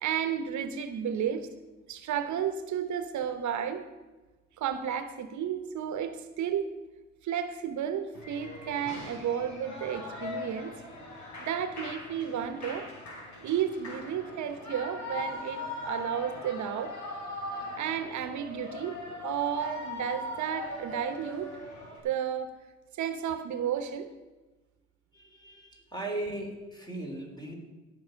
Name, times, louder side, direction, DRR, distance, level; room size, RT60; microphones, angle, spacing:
voice 1, 0.0-1.5 1.9-3.9 4.6-6.7 7.2-10.7 11.4-12.9 13.4-16.9 17.8-21.6 22.0-22.5 23.0-24.1, right 8 dB, 70° right, 10 dB, 0.9 m, -32 dB
Shout / Cheering, 8.1-22.0, left 2 dB, 70° left, 3.6 m, -40 dB
voice 2, 25.1-27.5, right 1 dB, 15° left, 0 dB, 3.4 m, -38 dB
17.0 x 6.1 x 5.1 m, 1.2 s
cardioid pair, 90°, 30 cm